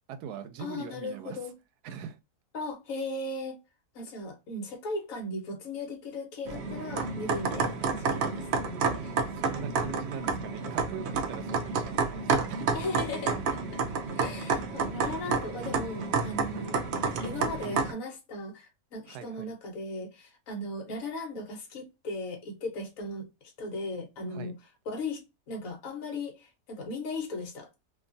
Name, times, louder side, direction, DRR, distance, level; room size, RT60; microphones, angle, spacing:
voice 1, 0.1-1.4 1.8-2.2 9.3-12.8 19.1-19.5 24.3-24.5, right 8 dB, 85° right, 1.1 m, -41 dB
voice 2, 0.6-1.5 2.5-3.6 3.9-9.2 12.7-13.8 14.1-16.8 17.1-23.3 23.6-24.5 24.9-27.7, left 2 dB, 65° left, 1.2 m, -37 dB
sound 1, 6.5-17.9, right 4 dB, 70° right, 0.6 m, -30 dB
2.9 x 2.3 x 2.5 m
omnidirectional pair, 1.6 m